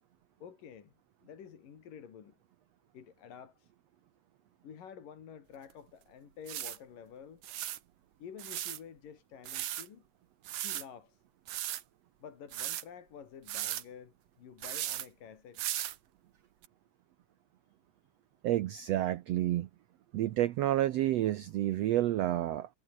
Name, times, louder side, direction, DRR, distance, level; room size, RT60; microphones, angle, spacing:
voice 1, 0.4-0.9 1.2-2.4 2.9-3.7 4.6-7.4 8.2-10.1 10.6-11.2 12.2-15.6, left 7 dB, 70° left, 4.3 m, -50 dB
sound 1, 5.7-5.8 6.5-6.8 7.4-7.8 8.4-8.8 9.5-9.9 10.5-10.9 11.5-11.8 12.5-12.8 13.5-13.8 14.6-15.1 15.6-16.0 16.6-16.7, right 13 dB, 65° right, 2.6 m, -36 dB
voice 2, 18.4-19.7 20.1-22.7, right 13 dB, 85° right, 1.4 m, -29 dB
omnidirectional pair, 4.0 m